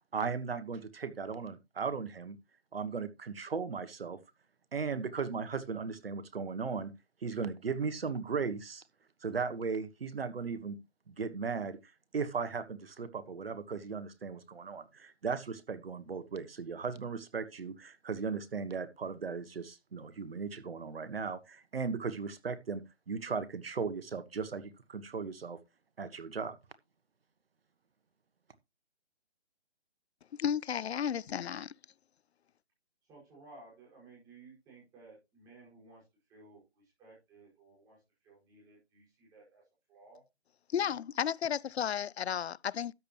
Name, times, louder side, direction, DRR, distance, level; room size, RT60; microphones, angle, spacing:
voice 1, 0.1-2.4 2.7-4.2 4.7-6.9 7.2-8.8 9.2-10.8 11.1-25.6 26.0-26.6, right 5 dB, 65° right, 1.4 m, -37 dB
voice 2, 30.3-31.7 40.7-42.9, left 8 dB, 75° left, 0.5 m, -33 dB
voice 3, 33.0-40.2 40.7-41.0, right 3 dB, 10° right, 5.4 m, -57 dB
13.0 x 8.7 x 3.0 m
hypercardioid pair, 165°, 32 cm